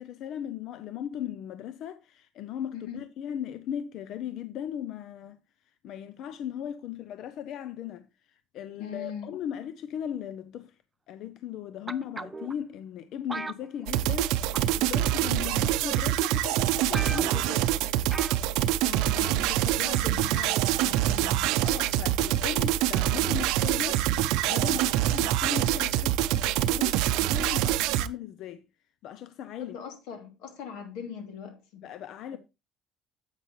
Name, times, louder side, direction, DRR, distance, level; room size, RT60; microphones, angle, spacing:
voice 1, 0.0-5.4 5.6-10.8 11.1-17.7 21.6-24.1 24.5-28.6 29.0-29.8 31.8-32.4, left 9 dB, 50° left, 0.5 m, -37 dB
voice 2, 2.7-3.1 8.8-9.3 15.4-15.6 18.8-21.6 24.7-24.8 29.6-31.9 32.3-32.4, left 7 dB, 80° left, 2.6 m, -41 dB
sound 1, 11.9-12.5 13.3-14.3 14.5-14.8 15.7-15.8 16.3-16.4 16.6-16.7 16.9-17.6 18.1-18.4 18.7-18.8, right 3 dB, 10° right, 0.4 m, -37 dB
sound 2, 13.9-28.1, right 13 dB, 80° right, 0.6 m, -25 dB
9.9 x 8.1 x 3.1 m
cardioid pair, 165°, 0 cm